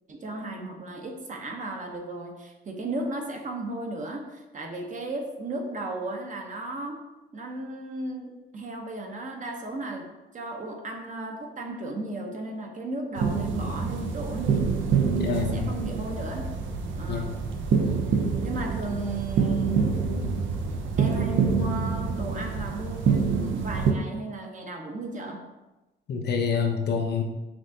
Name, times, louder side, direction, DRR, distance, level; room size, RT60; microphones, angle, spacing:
voice 1, 0.1-7.0 7.3-10.1 10.3-14.7 15.2-16.5 17.0-17.4 18.4-20.0 21.0-25.5, right 2 dB, 40° right, 2 dB, 0.8 m, -35 dB
sound 1, 13.2-23.9, right 5 dB, 75° right, 0.5 m, -26 dB
voice 2, 15.2-15.6 17.1-17.3 26.1-27.2, left 6 dB, 55° left, 3 dB, 0.6 m, -27 dB
5.9 x 2.5 x 2.7 m, 1.1 s
cardioid pair, 90°, 20 cm